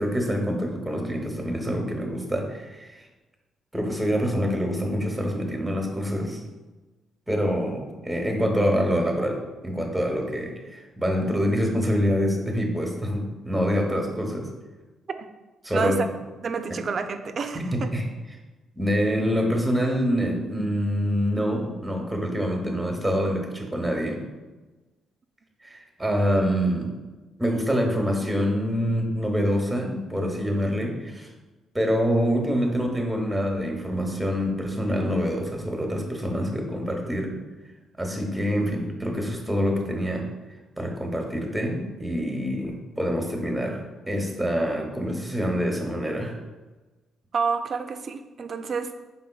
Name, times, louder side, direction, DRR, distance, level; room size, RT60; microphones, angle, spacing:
voice 1, 0.0-3.0 3.7-6.4 7.3-14.5 15.6-16.0 16.7-16.8 17.5-18.0 18.8-24.2 25.6-26.9 27.4-31.3 31.7-37.3 38.0-40.3 40.8-46.3, equal, 5° right, 1 dB, 0.8 m, -26 dB
voice 2, 16.4-17.9 47.3-49.1, right 5 dB, 45° right, 9 dB, 0.3 m, -29 dB
4.9 x 4.0 x 2.3 m, 1.2 s
cardioid pair, 90°, 0 cm